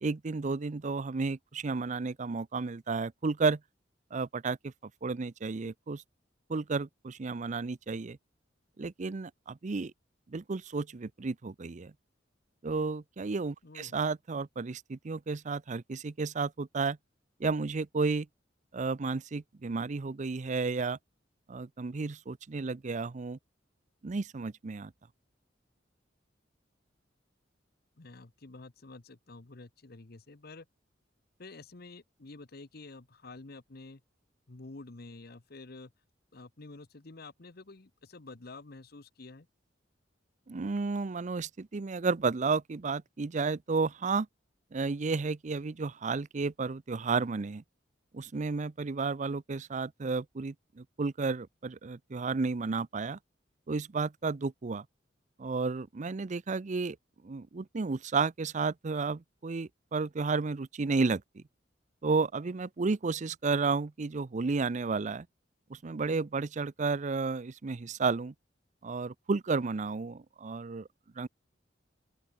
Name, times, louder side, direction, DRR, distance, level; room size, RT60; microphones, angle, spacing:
voice 1, 0.0-3.6 4.1-4.7 5.0-6.0 6.5-8.2 8.8-9.9 10.3-11.9 12.6-17.0 17.4-18.3 18.7-21.0 21.5-23.4 24.0-24.9 40.5-44.3 44.7-47.6 48.1-53.2 53.7-54.8 55.4-57.0 57.2-61.4 62.0-65.3 65.7-68.3 68.8-70.9 71.2-71.3, right 4 dB, 40° right, 0.5 m, -32 dB
voice 2, 13.6-14.0 28.0-30.7 31.4-34.0 34.5-35.9 36.3-39.5, left 3 dB, 55° left, 1.1 m, -49 dB
open air
head